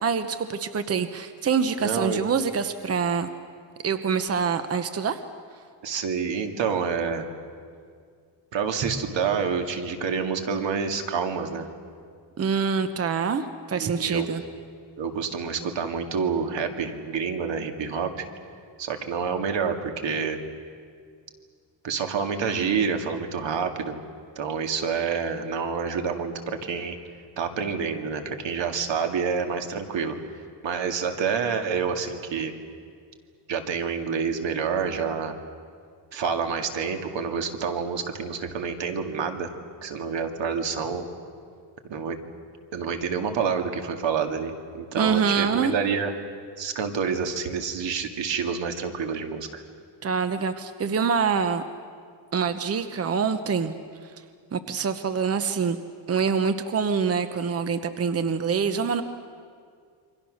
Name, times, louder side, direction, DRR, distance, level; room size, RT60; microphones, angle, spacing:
voice 1, 0.0-3.3 3.8-5.2 12.4-14.4 45.0-45.7 50.0-51.6 52.3-53.7 54.5-55.8 56.1-59.0, right 6 dB, 30° right, 10 dB, 0.9 m, -25 dB
voice 2, 1.8-2.2 5.8-7.3 8.5-11.7 13.7-14.3 15.0-18.3 18.8-20.4 21.8-24.0 24.4-27.0 27.4-30.2 30.6-32.5 33.5-35.4 36.1-39.5 39.8-41.1 41.9-42.2 42.7-46.1 46.6-49.6, right 6 dB, 75° right, 5 dB, 2.2 m, -28 dB
28.0 x 24.0 x 6.5 m, 2.1 s
cardioid pair, 140°, 45 cm